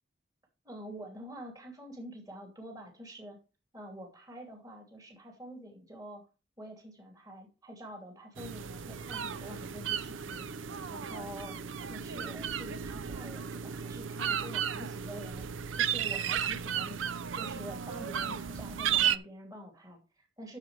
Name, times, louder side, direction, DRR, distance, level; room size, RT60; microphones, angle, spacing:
voice 1, 0.6-3.4 3.7-6.3 6.6-15.5 15.7-17.0 17.3-20.6, equal, 20° right, 0 dB, 2.7 m, -47 dB
sound 1, 8.4-19.2, right 8 dB, 85° right, 0.5 m, -34 dB
12.5 x 7.0 x 3.3 m, 0.31 s
head